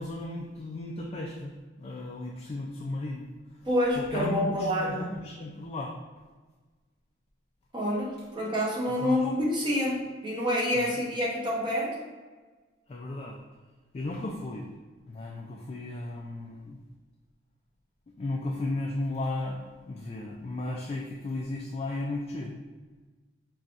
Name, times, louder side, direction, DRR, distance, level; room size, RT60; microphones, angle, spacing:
voice 1, 0.0-3.7 4.0-6.2 8.9-9.2 10.7-10.9 12.9-13.4 13.9-14.7 15.1-16.8 18.2-22.5, left 2 dB, 30° left, -1 dB, 0.3 m, -35 dB
voice 2, 3.6-5.1 7.7-11.9, equal, 25° right, -4 dB, 0.8 m, -27 dB
5.4 x 2.3 x 2.5 m, 1.3 s
head